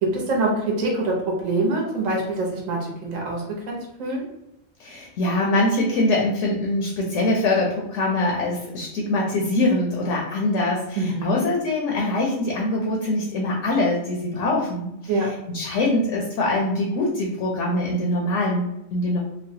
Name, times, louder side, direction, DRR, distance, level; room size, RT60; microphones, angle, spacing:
voice 1, 0.0-4.3 11.0-11.4 15.1-15.3, right 2 dB, 70° right, -2 dB, 1.1 m, -25 dB
voice 2, 4.8-19.2, left 2 dB, 70° left, -1 dB, 0.8 m, -23 dB
3.1 x 2.1 x 2.6 m, 0.86 s
omnidirectional pair, 1.5 m